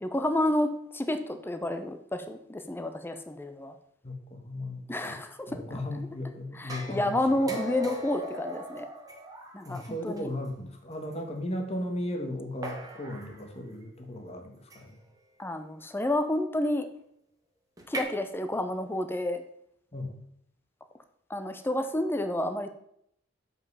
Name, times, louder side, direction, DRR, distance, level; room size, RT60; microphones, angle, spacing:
voice 1, 0.0-3.7 4.9-6.1 6.5-8.9 9.5-10.3 15.4-16.9 17.9-19.4 21.3-22.7, left 1 dB, 10° left, 7 dB, 0.7 m, -30 dB
voice 2, 4.0-5.2 5.5-7.6 9.6-15.0 19.9-20.2, left 1 dB, 30° left, 3 dB, 1.3 m, -36 dB
sound 1, 6.7-10.2 11.1-11.2 12.6-13.4 14.7-15.0 17.8-18.0, equal, 20° right, 1.2 m, -39 dB
7.3 x 5.5 x 5.4 m, 0.71 s
head